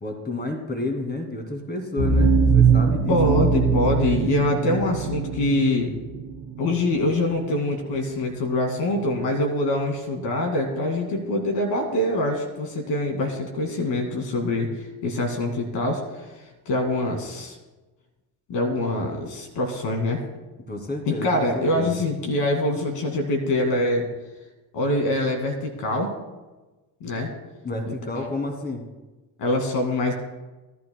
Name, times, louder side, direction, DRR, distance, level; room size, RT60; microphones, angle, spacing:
voice 1, 0.0-3.3 20.7-22.0 27.6-28.8, left 2 dB, 20° left, 4 dB, 2.4 m, -30 dB
sound 1, 2.0-6.8, right 5 dB, 85° right, 1.7 m, -21 dB
voice 2, 3.1-6.0 6.6-16.2 16.7-17.6 18.5-20.2 21.1-24.1 24.7-26.1 27.0-27.3 27.8-28.3 29.4-30.1, left 1 dB, 70° left, 2 dB, 2.3 m, -24 dB
18.0 x 11.0 x 2.2 m, 1.1 s
hypercardioid pair, 60°, 43 cm